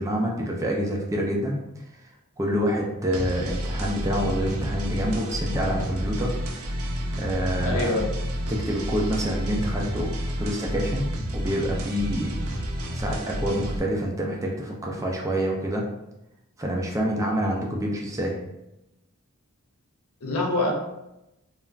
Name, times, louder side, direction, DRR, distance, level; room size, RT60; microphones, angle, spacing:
voice 1, 0.0-1.8 2.4-6.3 6.6-6.7 7.2-8.0 8.5-12.4 12.9-15.8 16.6-18.4, equal, 15° right, -1 dB, 0.3 m, -27 dB
sound 1, 3.1-13.8, equal, 75° right, 0.5 m, -30 dB
voice 2, 7.6-8.1 17.4-17.5 20.2-20.7, left 2 dB, 80° left, 1 dB, 0.6 m, -25 dB
3.2 x 2.3 x 2.3 m, 0.90 s
head